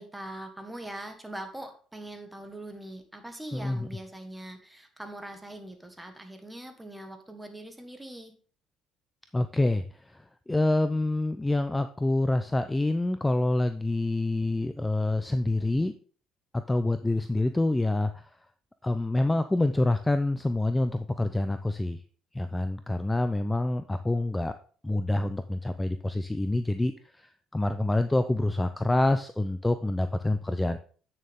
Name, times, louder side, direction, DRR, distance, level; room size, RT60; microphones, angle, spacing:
voice 1, 0.0-8.3, right 1 dB, 10° right, 6 dB, 1.6 m, -42 dB
voice 2, 3.5-3.9 9.3-9.8 10.1-10.2 10.5-15.9 16.5-18.2 18.8-22.0 22.3-24.5 24.8-30.8, left 2 dB, 10° left, 9 dB, 0.5 m, -27 dB
8.9 x 6.5 x 3.6 m, 0.42 s
cardioid pair, 100°, 0 cm